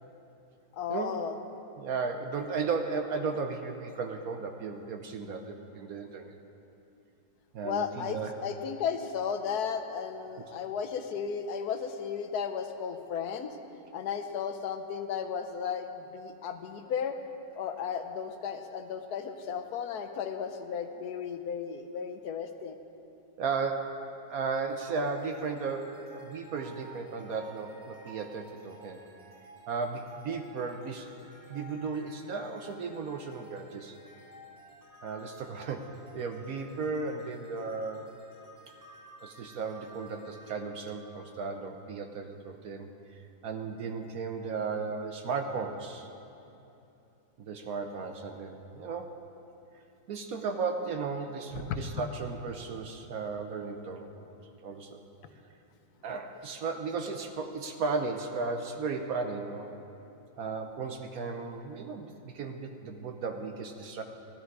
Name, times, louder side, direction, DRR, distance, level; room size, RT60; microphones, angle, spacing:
voice 1, 0.7-1.3 7.6-13.5 13.9-17.2 17.5-22.8 51.5-52.0, left 7 dB, 70° left, 8 dB, 1.3 m, -34 dB
voice 2, 1.8-6.3 7.5-8.3 23.4-29.0 29.7-31.1 31.5-34.0 35.0-38.1 39.2-42.9 43.4-46.1 47.4-49.2 50.1-54.3 54.6-55.0 56.0-59.7 60.4-64.0, right 4 dB, 65° right, 5 dB, 1.1 m, -35 dB
sound 1, 24.7-41.8, right 1 dB, 25° right, 1.2 m, -53 dB
15.5 x 12.5 x 4.7 m, 2.9 s
omnidirectional pair, 1.8 m